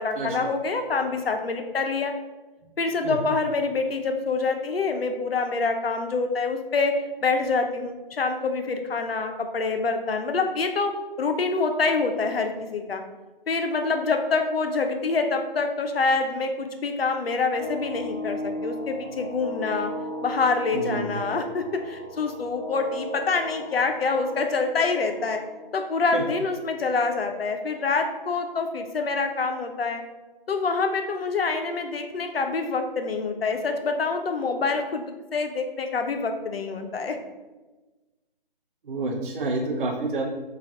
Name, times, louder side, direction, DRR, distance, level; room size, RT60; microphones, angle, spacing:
voice 1, 0.0-2.1 2.8-13.0 13.5-19.9 20.2-25.4 25.7-30.0 30.5-37.2, left 4 dB, 85° left, 6 dB, 0.5 m, -26 dB
sound 1, 17.6-25.7, left 1 dB, 25° left, 0.8 m, -36 dB
voice 2, 20.7-21.1 26.1-26.2 38.8-40.2, right 3 dB, 60° right, 0 dB, 0.5 m, -28 dB
2.6 x 2.4 x 3.2 m, 1.2 s
figure-of-eight pair, 145°, 29 cm